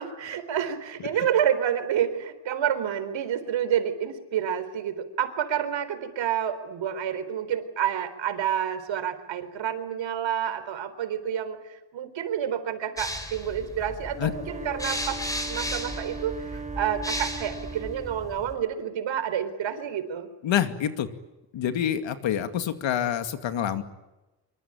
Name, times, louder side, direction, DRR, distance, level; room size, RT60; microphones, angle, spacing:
voice 1, 0.0-15.2 15.5-20.3, right 9 dB, 80° right, 11 dB, 4.0 m, -29 dB
sound 1, 13.0-18.5, left 1 dB, 10° left, 4.6 m, -35 dB
Wind instrument woodwind instrument, 14.0-18.2, right 4 dB, 15° right, 2.3 m, -39 dB
voice 2, 20.4-21.1 21.5-23.8, left 9 dB, 80° left, 8 dB, 2.6 m, -27 dB
25.5 x 24.5 x 9.1 m, 1.0 s
wide cardioid pair, 155°, 44 cm